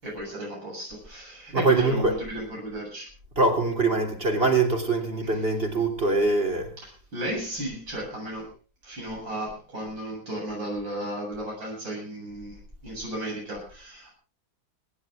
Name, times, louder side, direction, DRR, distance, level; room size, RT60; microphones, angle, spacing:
voice 1, 0.0-3.1 5.2-5.4 6.8-8.5 8.8-14.1, right 1 dB, 80° right, -3 dB, 8.6 m, -34 dB
voice 2, 1.5-2.2 3.4-6.7, right 3 dB, 30° right, 3 dB, 3.5 m, -23 dB
29.5 x 11.0 x 3.7 m, 0.34 s
omnidirectional pair, 2.0 m